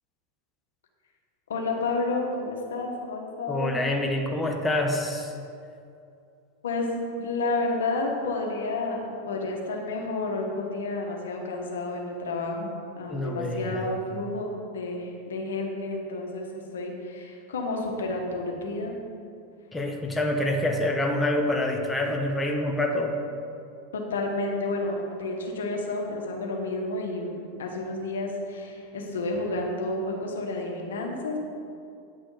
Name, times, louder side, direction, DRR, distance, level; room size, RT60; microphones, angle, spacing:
voice 1, 1.5-3.7 6.6-12.7 13.0-18.9 23.9-31.4, left 2 dB, 90° left, 1 dB, 1.5 m, -30 dB
voice 2, 3.5-5.3 13.1-13.9 19.7-23.2, left 1 dB, 10° left, 1 dB, 1.1 m, -26 dB
9.8 x 6.2 x 5.0 m, 2.5 s
hypercardioid pair, 115°, 0 cm